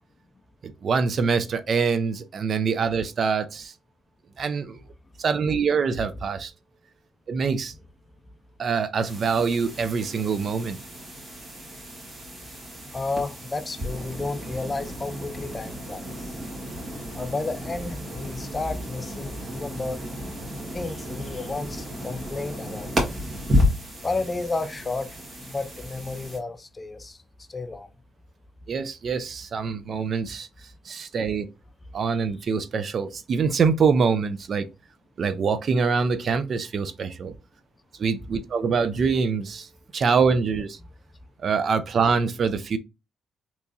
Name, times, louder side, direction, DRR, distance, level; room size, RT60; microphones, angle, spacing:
voice 1, 0.6-3.7 4.4-4.8 5.2-6.5 7.3-7.7 8.6-10.8 28.7-30.5 30.9-31.5 31.9-34.7 35.2-37.3 38.0-39.7 39.9-40.8 41.4-42.8, right 5 dB, 50° right, 0.4 m, -24 dB
sound 1, 9.0-26.4, left 1 dB, 30° right, 1.6 m, -32 dB
voice 2, 12.9-16.3 17.1-20.0 20.7-22.9 24.0-27.2 27.5-27.9 32.1-32.2 40.8-40.9, left 3 dB, 25° left, 0.4 m, -32 dB
3.4 x 3.0 x 2.7 m
cardioid pair, 90°, 0 cm